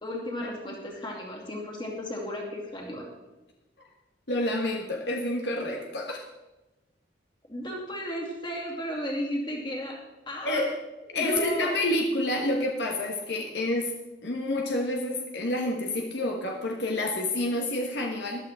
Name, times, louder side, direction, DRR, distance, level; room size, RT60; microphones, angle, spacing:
voice 1, 0.0-3.0 7.5-10.0 10.3-10.6 11.1-11.7, equal, 25° left, -1 dB, 2.5 m, -34 dB
voice 2, 4.3-6.2 10.4-10.7 11.1-13.9 14.2-18.5, left 1 dB, 65° left, 0 dB, 1.3 m, -28 dB
14.0 x 11.5 x 3.6 m, 1.0 s
head